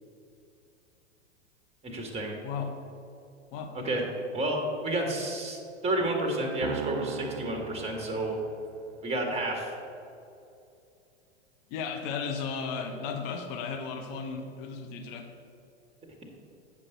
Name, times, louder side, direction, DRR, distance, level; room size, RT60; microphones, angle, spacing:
voice 1, 1.8-2.4 3.7-4.1 4.3-5.6 5.8-8.4 9.0-9.7, right 1 dB, 15° right, 1 dB, 1.8 m, -30 dB
voice 2, 2.4-2.8 3.5-3.7 11.7-15.3, left 5 dB, 50° left, 5 dB, 1.2 m, -35 dB
Piano, 6.6-9.0, right 11 dB, 70° right, 0.5 m, -39 dB
8.5 x 5.4 x 6.7 m, 2.7 s
hypercardioid pair, 100°, 35 cm